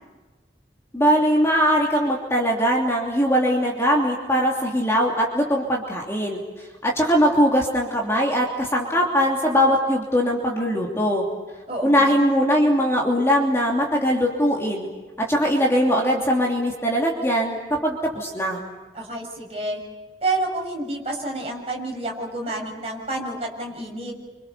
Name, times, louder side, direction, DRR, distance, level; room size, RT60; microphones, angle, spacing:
voice 1, 0.9-6.4 6.8-11.2 11.8-14.9 15.2-18.6, equal, 15° left, -2 dB, 3.0 m, -21 dB
voice 2, 11.7-12.3 18.9-19.8 20.2-24.1, right 2 dB, 35° right, -1 dB, 6.4 m, -29 dB
29.5 x 26.5 x 6.8 m, 1.2 s
head